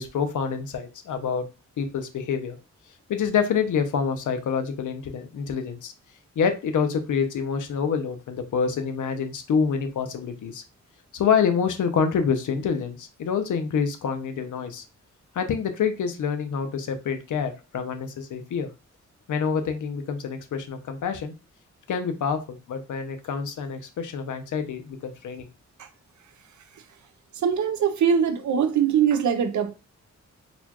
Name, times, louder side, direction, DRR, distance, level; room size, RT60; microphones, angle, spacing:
voice 1, 0.0-1.5 1.8-2.6 3.1-5.9 6.4-10.6 11.1-14.8 15.3-18.7 19.3-21.3 21.9-25.5, left 6 dB, 90° left, 0.7 m, -27 dB
voice 2, 27.3-29.7, right 7 dB, 75° right, 0.6 m, -22 dB
4.1 x 2.3 x 2.9 m
wide cardioid pair, 145°, 29 cm